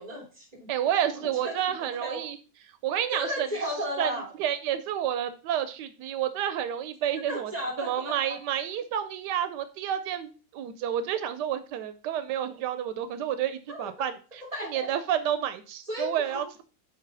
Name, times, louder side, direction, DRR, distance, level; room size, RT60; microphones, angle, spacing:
voice 1, 0.0-0.7 1.1-1.6 2.0-2.3 3.1-4.3 7.3-8.4 13.7-13.9 14.5-14.9 15.8-16.4, equal, 25° right, -2 dB, 2.7 m, -34 dB
voice 2, 0.7-2.4 2.8-3.5 4.0-4.1 4.4-7.5 7.8-16.6, right 10 dB, 85° right, 11 dB, 1.2 m, -30 dB
8.0 x 3.3 x 5.4 m, 0.36 s
omnidirectional pair, 1.8 m